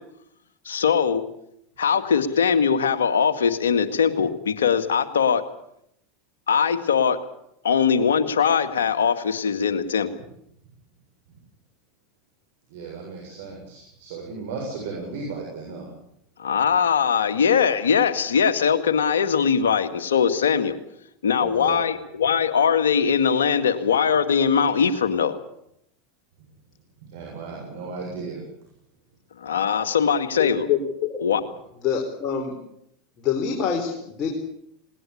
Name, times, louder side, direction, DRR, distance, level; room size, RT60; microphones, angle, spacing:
voice 1, 0.7-1.2 1.8-5.4 6.5-7.2 7.6-10.1 16.4-20.8 21.2-25.3 29.4-30.7 31.2-31.4, left 7 dB, 80° left, 8 dB, 1.9 m, -21 dB
voice 2, 12.7-15.9 21.4-21.8 27.1-28.4, right 4 dB, 70° right, -1 dB, 7.4 m, -35 dB
voice 3, 30.4-30.8 31.8-32.5 33.2-34.3, left 7 dB, 40° left, 1 dB, 4.5 m, -25 dB
20.0 x 19.0 x 8.6 m, 0.75 s
hypercardioid pair, 90°, 0 cm